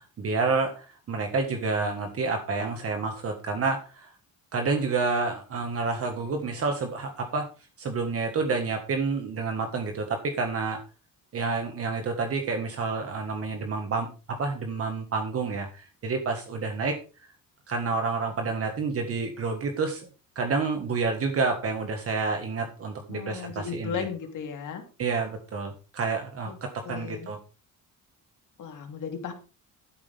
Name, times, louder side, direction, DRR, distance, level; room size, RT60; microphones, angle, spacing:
voice 1, 0.0-4.1 4.5-7.5 7.8-10.8 11.3-17.0 17.7-20.1 20.3-23.9 25.0-27.4, right 4 dB, 45° right, 4 dB, 1.7 m, -29 dB
voice 2, 23.1-24.8 26.4-26.6 26.8-27.3 28.6-29.3, left 7 dB, 65° left, 4 dB, 2.9 m, -35 dB
12.0 x 9.7 x 3.6 m, 0.33 s
cardioid pair, 150°, 33 cm